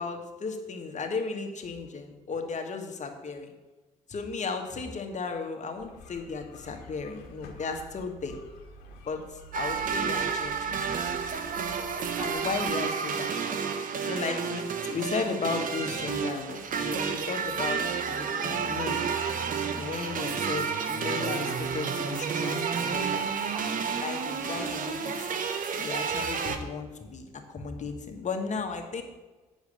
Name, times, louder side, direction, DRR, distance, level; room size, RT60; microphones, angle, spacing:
voice 1, 0.0-3.5 4.1-8.4 9.0-10.9 12.2-13.3 14.0-19.0 19.8-23.3 24.0-25.3 25.7-29.0, left 4 dB, 50° left, 4 dB, 1.6 m, -35 dB
sound 1, 5.8-12.7, right 1 dB, 80° left, 1.3 m, -49 dB
sound 2, 9.5-26.6, right 6 dB, 60° right, 1.1 m, -30 dB
8.1 x 6.5 x 6.7 m, 1.2 s
hypercardioid pair, 50°, 16 cm